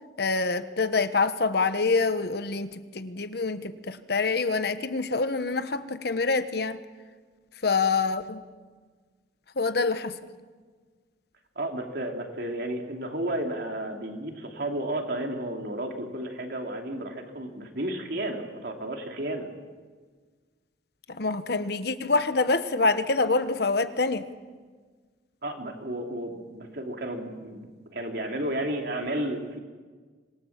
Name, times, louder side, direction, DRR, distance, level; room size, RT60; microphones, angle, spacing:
voice 1, 0.2-6.8 7.6-8.4 9.6-10.2 21.1-24.3, left 3 dB, 60° left, 11 dB, 1.2 m, -26 dB
voice 2, 11.5-19.5 25.4-29.6, right 1 dB, 60° right, 2 dB, 3.1 m, -32 dB
26.0 x 21.5 x 7.4 m, 1.5 s
head